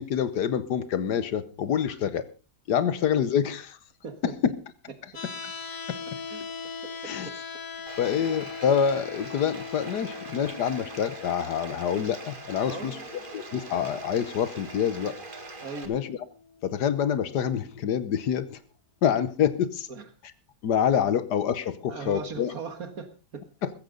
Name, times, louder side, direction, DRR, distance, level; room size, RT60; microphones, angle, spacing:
voice 1, 0.0-2.3 2.7-3.8 4.2-4.3 5.2-5.5 5.9-6.0 7.0-7.3 8.0-13.0 13.3-15.1 15.9-16.2 16.6-18.6 19.0-19.9 20.6-22.5 23.6-23.7, left 8 dB, 75° left, 15 dB, 1.6 m, -26 dB
sound 1, 5.1-17.2, left 5 dB, 55° left, 1.6 m, -41 dB
voice 2, 6.8-7.3 7.8-7.9 12.6-13.4 15.6-15.9 19.9-20.0 21.0-21.1 21.9-23.4, right 5 dB, 60° right, 10 dB, 2.1 m, -39 dB
Bathtub (filling or washing), 7.9-15.9, right 3 dB, 30° right, 1.9 m, -43 dB
15.0 x 14.5 x 3.9 m, 0.33 s
omnidirectional pair, 1.8 m